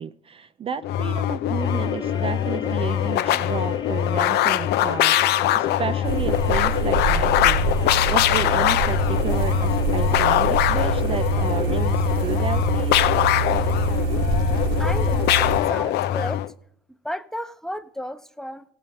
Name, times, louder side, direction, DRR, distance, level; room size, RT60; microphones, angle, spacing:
voice 1, 0.0-13.1, right 7 dB, 35° right, 11 dB, 0.4 m, -32 dB
sound 1, 0.8-16.5, left 13 dB, 80° left, 0.5 m, -22 dB
sound 2, 1.6-16.2, left 3 dB, 25° left, 1.1 m, -39 dB
sound 3, 6.0-15.6, right 3 dB, 90° right, 1.6 m, -25 dB
voice 2, 14.8-16.4 16.9-18.6, equal, 5° left, 11 dB, 0.7 m, -33 dB
17.0 x 7.7 x 5.4 m, 0.72 s
cardioid pair, 110°, 17 cm